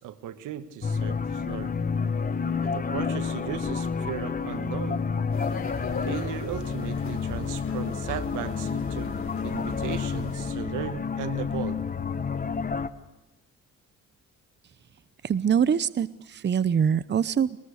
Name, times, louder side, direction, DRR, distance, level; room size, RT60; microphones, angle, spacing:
voice 1, 0.0-1.7 2.6-5.1 6.0-9.2 9.4-11.9, right 11 dB, 85° right, 1.5 m, -36 dB
sound 1, 0.8-12.9, left 5 dB, 30° left, 1.3 m, -30 dB
sound 2, 5.3-10.5, left 4 dB, 45° left, 6.2 m, -39 dB
voice 2, 15.2-17.6, right 7 dB, 35° right, 0.8 m, -24 dB
22.5 x 20.5 x 6.6 m
cardioid pair, 90°, 30 cm